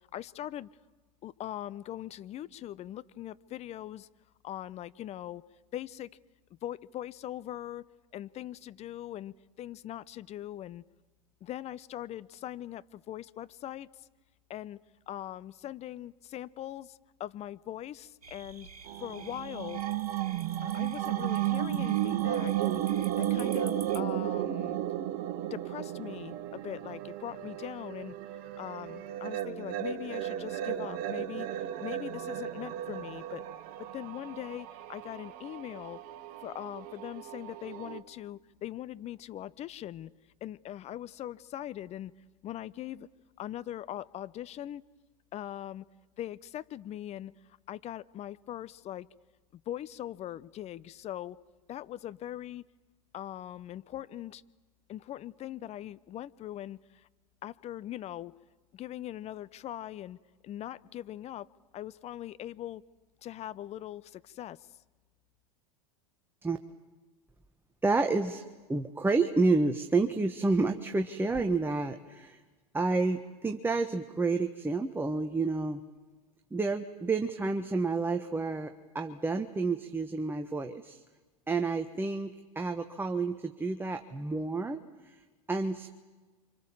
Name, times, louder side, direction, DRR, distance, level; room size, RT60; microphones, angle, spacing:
voice 1, 0.1-0.7 1.2-4.1 4.4-5.4 5.7-6.1 6.6-7.8 8.1-10.8 11.4-14.1 14.5-14.8 15.1-18.7 19.0-19.9 20.6-22.8 23.2-24.8 25.5-28.2 28.6-33.4 33.8-36.0 36.4-40.1 40.4-42.1 42.4-43.1 43.4-44.8 45.3-45.9 46.2-47.3 47.7-49.1 49.5-51.4 51.7-52.6 53.1-54.4 54.9-57.1 57.4-58.3 58.7-60.2 60.4-61.5 61.7-62.8 63.2-64.7, left 12 dB, 35° left, 17 dB, 0.9 m, -41 dB
sound 1, 18.2-24.0, right 5 dB, 90° right, 1.6 m, -49 dB
sound 2, 18.9-38.0, right 12 dB, 50° right, 1.8 m, -34 dB
voice 2, 67.8-68.4 68.7-72.4 72.7-75.8 76.5-81.0 81.5-85.2 85.5-85.9, right 3 dB, 10° right, 5 dB, 1.4 m, -30 dB
29.5 x 26.0 x 7.3 m, 1.3 s
hypercardioid pair, 90°, 19 cm